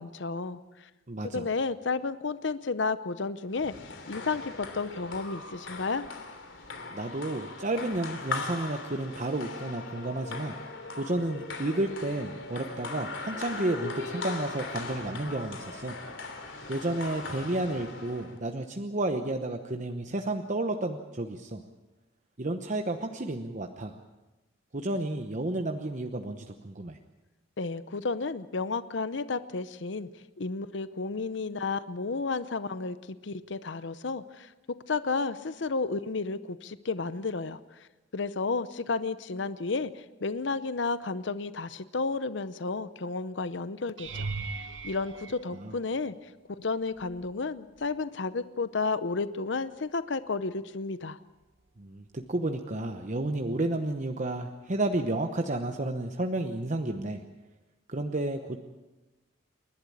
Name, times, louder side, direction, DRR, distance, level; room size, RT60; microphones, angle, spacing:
voice 1, 0.0-0.9 1.2-6.1 27.6-30.1 30.4-33.0 33.2-37.9 38.1-44.3 44.8-51.2, left 4 dB, 70° left, 13 dB, 0.7 m, -32 dB
voice 2, 1.1-1.5 6.9-10.5 11.0-15.9 16.7-21.6 22.4-24.0 24.7-27.0 45.5-45.7 51.8-57.2 57.9-58.6, right 2 dB, 40° right, 5 dB, 1.0 m, -31 dB
sound 1, 3.5-18.4, left 3 dB, 85° left, 3.0 m, -39 dB
sound 2, 44.0-46.3 46.9-47.4 47.8-47.9 52.3-52.4, right 4 dB, 80° right, 1.2 m, -39 dB
29.0 x 11.5 x 8.6 m, 1.1 s
head